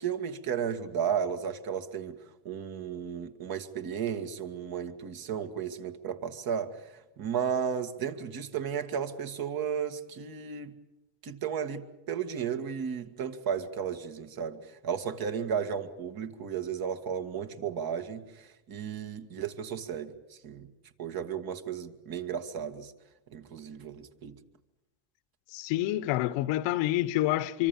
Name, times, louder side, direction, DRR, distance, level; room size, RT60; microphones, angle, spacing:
voice 1, 0.0-2.2 2.4-10.7 11.2-20.7 21.0-22.9 23.3-24.3, right 7 dB, 45° right, 2.1 m, -34 dB
voice 2, 25.5-27.7, left 15 dB, 65° left, 1.1 m, -28 dB
25.5 x 24.5 x 7.2 m
supercardioid pair, 105°, 48 cm